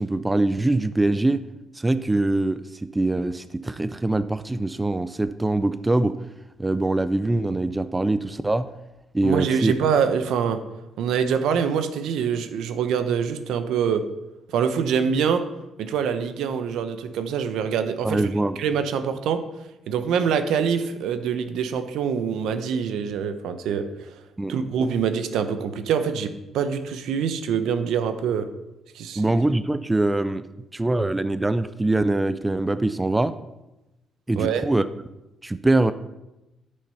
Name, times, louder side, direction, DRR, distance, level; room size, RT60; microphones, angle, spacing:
voice 1, 0.0-1.4 1.7-6.2 6.6-8.7 9.1-9.7 18.0-18.6 24.4-24.5 29.2-30.5 30.7-33.3 34.3-34.8 35.4-35.9, right 2 dB, 15° right, 13 dB, 0.4 m, -23 dB
voice 2, 9.2-10.6 11.0-14.0 14.5-15.4 15.8-18.3 18.6-19.4 19.9-24.1 24.5-28.5 28.9-29.2 34.4-34.6, right 7 dB, 85° right, 9 dB, 0.8 m, -25 dB
8.7 x 6.6 x 5.6 m, 0.97 s
cardioid pair, 90°, 0 cm